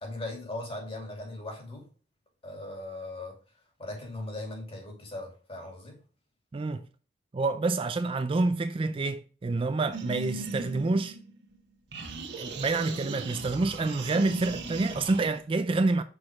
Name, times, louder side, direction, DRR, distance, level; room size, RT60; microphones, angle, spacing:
voice 1, 0.0-1.9 2.4-3.4 3.8-6.0, left 2 dB, 35° left, 2.6 m, -39 dB
voice 2, 6.5-6.8 7.3-11.2 12.4-16.0, right 3 dB, 30° right, 0.4 m, -28 dB
sound 1, 9.9-11.6 11.9-15.4, right 3 dB, 65° right, 1.4 m, -39 dB
6.3 x 4.8 x 3.5 m
head